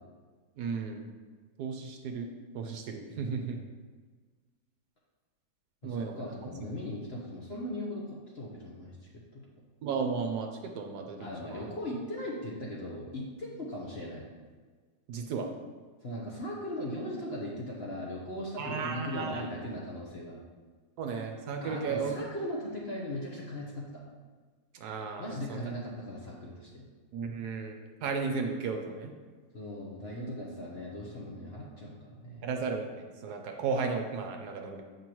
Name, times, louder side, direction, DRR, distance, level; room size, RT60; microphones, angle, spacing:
voice 1, 0.6-1.1 1.6-2.3 2.5-3.6 5.8-6.2 9.8-11.7 15.1-15.5 18.6-19.4 21.0-22.2 24.7-25.6 27.1-29.1 32.4-34.8, right 5 dB, 70° right, 4 dB, 1.1 m, -34 dB
voice 2, 3.1-3.5 5.8-8.0 8.3-9.0 9.3-9.4 11.2-14.2 16.0-20.4 21.6-24.0 25.2-26.9 29.5-32.5, left 1 dB, 45° left, -3 dB, 0.9 m, -38 dB
7.8 x 5.3 x 3.0 m, 1.5 s
omnidirectional pair, 1.9 m